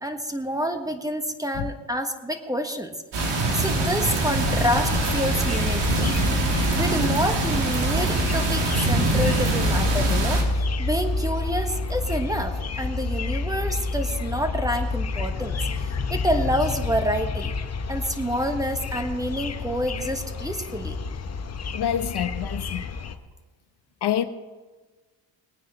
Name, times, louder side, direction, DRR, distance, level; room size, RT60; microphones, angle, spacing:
voice 1, 0.0-2.9 3.5-6.1 6.7-17.5 17.9-21.0, equal, 10° right, 1.3 m, -28 dB
sound 1, 3.1-10.4, right 2 dB, 65° right, 2.9 m, -24 dB
sound 2, 4.4-23.2, left 3 dB, 35° left, 1.0 m, -29 dB
voice 2, 21.7-22.8 24.0-24.2, left 10 dB, 60° left, 0.9 m, -26 dB
21.0 x 9.4 x 4.2 m
cardioid pair, 85°, 45 cm